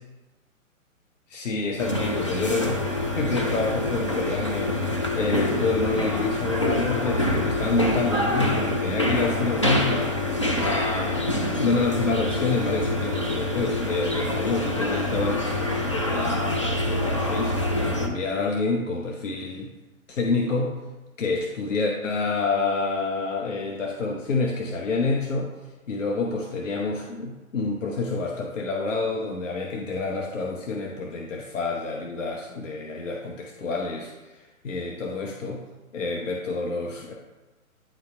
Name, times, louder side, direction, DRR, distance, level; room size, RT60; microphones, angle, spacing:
voice 1, 1.3-2.9 3.2-4.7 5.1-10.1 10.6-15.5 15.8-19.7 20.1-20.7 21.2-25.5 25.9-35.6 35.9-37.1, left 3 dB, 60° left, 0 dB, 1.0 m, -28 dB
sound 1, 1.8-18.1, left 1 dB, 25° left, 0.4 m, -26 dB
9.3 x 4.2 x 4.4 m, 1.2 s
figure-of-eight pair, 130°, 42 cm